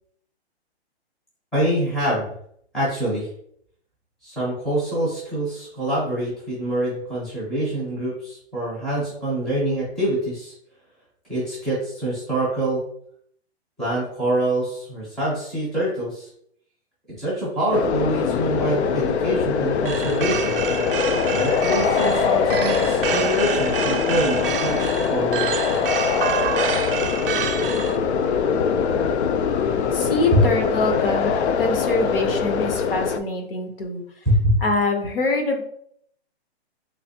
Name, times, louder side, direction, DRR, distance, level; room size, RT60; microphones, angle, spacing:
voice 1, 1.5-2.2 2.7-3.3 4.2-10.5 11.3-12.8 13.8-16.3 17.2-20.6 21.3-25.5 30.3-30.4 34.2-34.6, right 1 dB, ahead, -9 dB, 0.5 m, -25 dB
sound 1, 17.7-33.2, left 6 dB, 80° left, 0.5 m, -23 dB
sound 2, 19.9-28.0, right 8 dB, 55° right, 0.5 m, -28 dB
voice 2, 29.9-34.0 34.6-35.6, left 3 dB, 60° left, 5 dB, 0.9 m, -24 dB
3.2 x 3.2 x 2.7 m, 0.66 s
hypercardioid pair, 165°, 33 cm